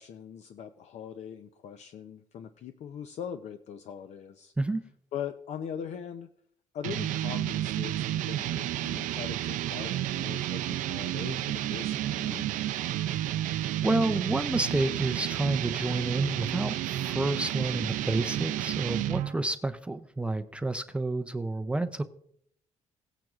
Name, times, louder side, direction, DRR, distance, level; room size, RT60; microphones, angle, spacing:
voice 1, 0.0-4.5 5.1-6.3 6.7-12.5, left 8 dB, 60° left, 9 dB, 0.6 m, -41 dB
sound 1, 6.8-19.4, right 13 dB, 85° right, 0.4 m, -31 dB
voice 2, 13.8-22.0, right 2 dB, 10° right, 9 dB, 0.4 m, -29 dB
17.5 x 9.1 x 2.4 m, 0.69 s
cardioid pair, 150°, 13 cm